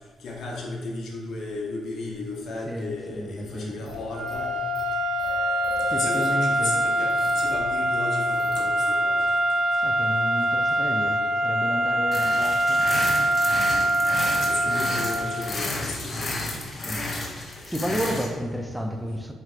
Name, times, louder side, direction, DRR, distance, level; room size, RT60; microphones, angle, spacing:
voice 1, 0.2-4.6 5.9-9.3 14.5-16.3, left 2 dB, 70° left, -1 dB, 0.8 m, -34 dB
voice 2, 2.7-4.0 5.8-6.9 9.2-9.4 9.8-12.9 14.6-15.1 15.5-15.6 16.5-19.3, equal, 5° right, 3 dB, 0.4 m, -32 dB
sound 1, 3.9-7.7 8.2-8.7, left 2 dB, 10° left, 1.2 m, -42 dB
sound 2, 4.1-15.6, right 1 dB, 75° right, 0.6 m, -24 dB
sound 3, 12.1-18.3, left 2 dB, 35° left, 0.6 m, -32 dB
4.3 x 3.2 x 2.4 m, 1.5 s
cardioid pair, 90°, 0 cm